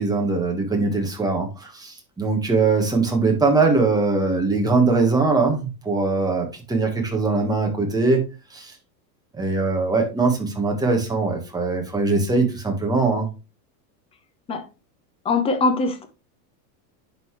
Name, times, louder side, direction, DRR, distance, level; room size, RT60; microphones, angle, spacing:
voice 1, 0.0-8.2 8.5-8.7 9.3-13.3, right 3 dB, 10° right, 1.4 m, -21 dB
voice 2, 15.2-16.1, left 3 dB, 10° left, 0.7 m, -21 dB
10.5 x 3.9 x 3.1 m
supercardioid pair, 155°, 49 cm